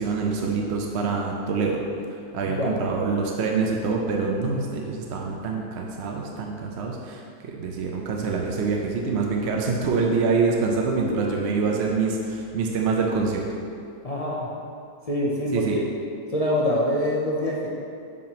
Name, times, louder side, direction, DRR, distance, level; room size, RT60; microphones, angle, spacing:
voice 1, 0.0-1.8 2.3-13.4 15.5-15.8, right 4 dB, 60° right, 0 dB, 0.8 m, -25 dB
voice 2, 14.0-14.5 15.1-15.8 16.3-17.7, left 1 dB, 55° left, -5 dB, 0.4 m, -25 dB
7.4 x 2.9 x 5.9 m, 2.5 s
omnidirectional pair, 1.5 m